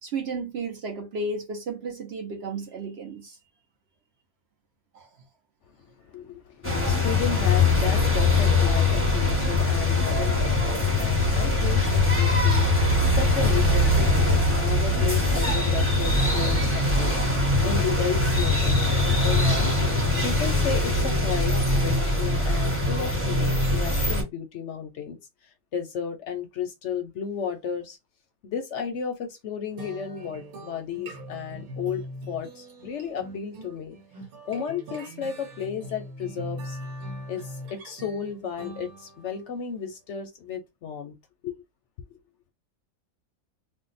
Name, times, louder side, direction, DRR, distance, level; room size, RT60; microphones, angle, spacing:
voice 1, 0.0-3.4 4.9-5.0, right 3 dB, 60° right, 0.8 m, -33 dB
voice 2, 6.0-18.8 19.2-19.7 20.2-21.5 21.8-25.2 25.4-28.0 28.4-34.0 34.5-36.8 37.3-41.1 41.4-41.6, left 7 dB, 65° left, 0.8 m, -33 dB
sound 1, 6.6-24.2, left 2 dB, 10° right, 0.9 m, -22 dB
sound 2, 29.8-39.4, equal, 85° right, 1.3 m, -40 dB
2.6 x 2.1 x 3.9 m
omnidirectional pair, 1.5 m